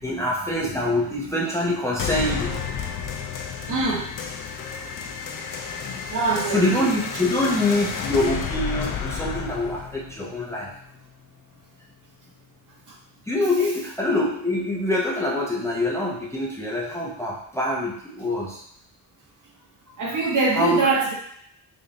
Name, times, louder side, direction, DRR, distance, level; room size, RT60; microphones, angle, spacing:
voice 1, 0.0-2.7 6.3-10.7 13.3-18.6 20.1-20.2 20.5-20.9, left 1 dB, 5° left, -4 dB, 0.6 m, -25 dB
sound 1, 2.0-11.0, left 6 dB, 55° left, 0.5 m, -31 dB
voice 2, 3.7-4.1 6.1-6.9 20.0-21.1, right 3 dB, 50° right, -2 dB, 1.0 m, -23 dB
3.4 x 2.6 x 3.9 m, 0.68 s
wide cardioid pair, 130°, 40 cm